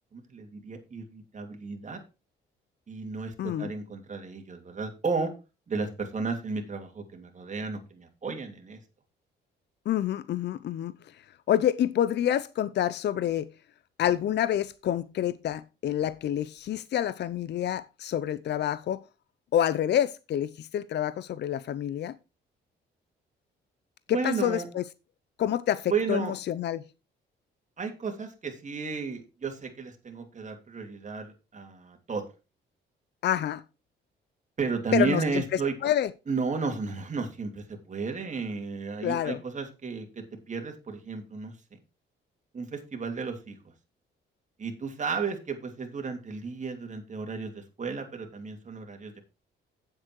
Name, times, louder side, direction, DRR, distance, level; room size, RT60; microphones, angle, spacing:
voice 1, 0.1-2.0 2.9-5.3 5.7-8.8 24.1-24.7 25.9-26.3 27.8-32.3 34.6-35.7 36.3-41.5 42.5-43.6 44.6-49.1, right 4 dB, 35° right, 2.9 m, -33 dB
voice 2, 3.4-3.7 9.9-10.9 11.5-13.5 14.0-19.0 19.5-22.2 24.1-24.8 25.4-26.8 33.2-33.6 34.9-36.1 39.0-39.4, left 11 dB, 60° left, 0.6 m, -28 dB
9.0 x 7.7 x 4.6 m
cardioid pair, 90°, 20 cm